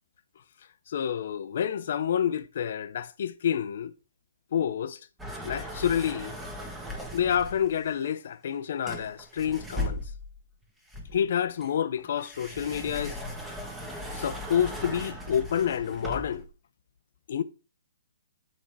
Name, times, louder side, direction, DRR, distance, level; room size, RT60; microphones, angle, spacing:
voice 1, 0.9-3.9 4.5-5.0 5.4-6.3 7.1-10.0 11.1-13.2 14.1-16.4 17.3-17.4, left 9 dB, 60° left, 0.5 m, -28 dB
sound 1, 5.2-7.8 8.9-10.4 10.9-16.5, left 1 dB, 5° right, 1.1 m, -38 dB
7.2 x 4.3 x 4.6 m
hypercardioid pair, 150°, 0 cm